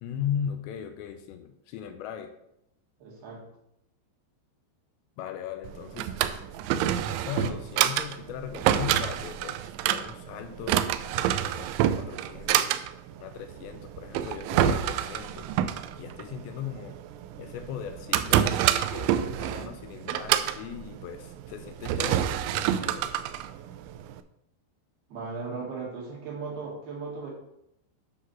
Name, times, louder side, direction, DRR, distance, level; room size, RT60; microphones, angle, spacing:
voice 1, 0.0-2.3 5.2-6.2 6.8-12.8 13.2-15.5 16.0-17.0 17.4-18.7 18.9-23.1, left 9 dB, 80° left, 7 dB, 2.5 m, -38 dB
voice 2, 3.0-3.4 25.1-27.3, right 4 dB, 65° right, -2 dB, 3.0 m, -37 dB
Drawer open or close, 5.6-24.2, right 11 dB, 85° right, 2.7 m, -28 dB
10.0 x 3.9 x 6.1 m, 0.80 s
omnidirectional pair, 5.6 m